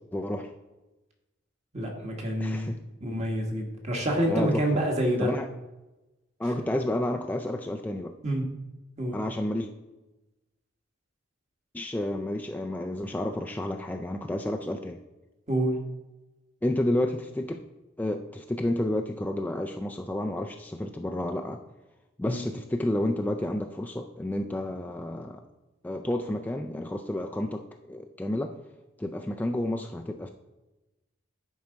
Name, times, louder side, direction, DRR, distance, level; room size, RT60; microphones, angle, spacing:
voice 1, 0.1-0.5 2.4-2.8 4.3-4.9 5.2-5.5 6.4-8.2 9.1-9.7 11.7-15.0 16.6-17.6 18.0-21.6 22.2-25.4 25.8-28.6 29.0-30.3, left 1 dB, 10° left, 4 dB, 0.3 m, -30 dB
voice 2, 1.7-2.7 3.0-5.3 8.2-8.4 9.0-9.2 15.5-15.7 22.3-22.4, right 1 dB, 35° right, 1 dB, 1.5 m, -27 dB
10.5 x 4.7 x 3.9 m, 1.0 s
head